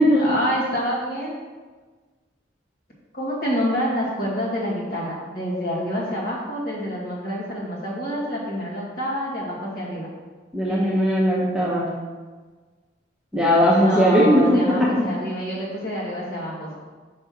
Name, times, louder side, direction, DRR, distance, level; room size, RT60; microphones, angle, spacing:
voice 1, 0.0-1.3 3.1-10.1 10.7-11.2 13.7-16.8, equal, 50° left, -6 dB, 1.9 m, -27 dB
voice 2, 10.5-11.9 13.3-14.6, equal, 5° right, -7 dB, 1.0 m, -18 dB
5.7 x 3.4 x 5.8 m, 1.4 s
head